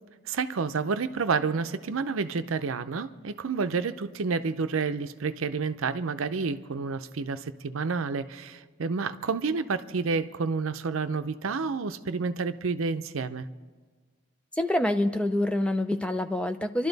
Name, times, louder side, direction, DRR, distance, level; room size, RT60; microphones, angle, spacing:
voice 1, 0.3-13.5, right 4 dB, 80° right, 11 dB, 0.6 m, -29 dB
voice 2, 14.5-16.9, left 1 dB, 5° left, 7 dB, 0.5 m, -26 dB
26.0 x 12.5 x 4.0 m, 1.5 s
head